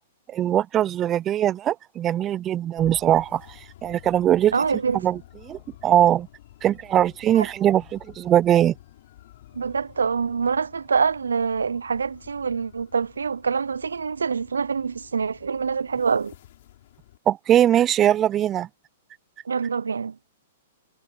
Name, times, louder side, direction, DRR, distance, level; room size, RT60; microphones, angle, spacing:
voice 1, 0.3-4.5 4.9-6.3 6.6-8.7 17.3-18.7, right 11 dB, 25° right, 0.7 m, -21 dB
sound 1, 2.8-17.2, left 14 dB, 60° left, 7.0 m, -50 dB
voice 2, 4.5-5.0 9.6-16.3 19.5-20.3, right 5 dB, 85° right, 0.5 m, -25 dB
hypercardioid pair, 115°, 0 cm